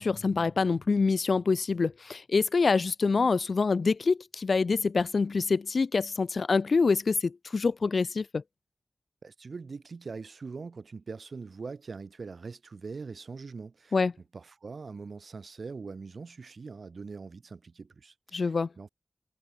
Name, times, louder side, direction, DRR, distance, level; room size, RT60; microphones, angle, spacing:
voice 1, 0.0-8.4 13.9-14.1 18.3-18.7, left 4 dB, 80° left, 0.3 m, -26 dB
voice 2, 9.2-14.0 14.3-18.9, right 4 dB, 80° right, 3.3 m, -42 dB
wide cardioid pair, 70°, 0 cm